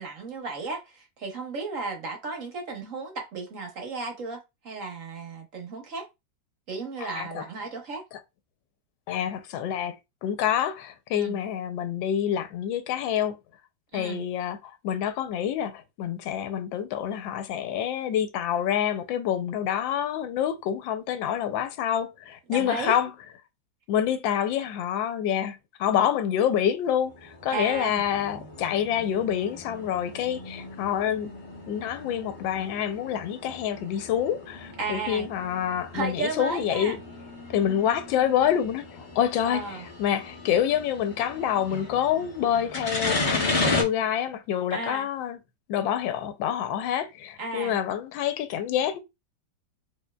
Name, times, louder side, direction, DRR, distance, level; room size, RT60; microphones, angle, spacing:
voice 1, 0.0-6.1 6.7-8.0 11.1-11.4 13.9-14.2 22.5-22.9 27.5-28.0 34.8-35.3 35.9-37.0 37.5-37.8 39.4-39.9 44.7-45.1 47.4-47.8, right 4 dB, 55° right, 1.0 m, -34 dB
voice 2, 7.0-7.4 9.1-9.9 10.2-13.4 13.9-23.1 23.9-31.3 31.7-37.0 37.5-45.4 45.7-49.0, left 9 dB, 85° left, 1.3 m, -27 dB
sound 1, 27.0-43.8, left 3 dB, 45° left, 0.6 m, -35 dB
4.4 x 3.0 x 2.3 m
omnidirectional pair, 2.1 m